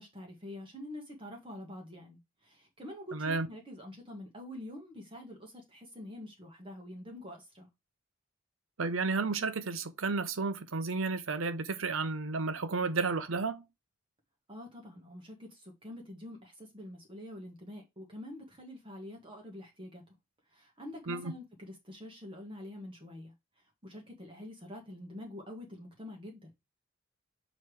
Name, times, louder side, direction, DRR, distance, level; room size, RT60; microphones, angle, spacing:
voice 1, 0.0-7.7 14.5-20.1 20.5-26.5, left 1 dB, 25° right, 1.5 m, -46 dB
voice 2, 3.1-3.5 8.8-13.7 21.1-21.3, right 4 dB, 75° right, 0.8 m, -32 dB
7.1 x 3.2 x 4.8 m
head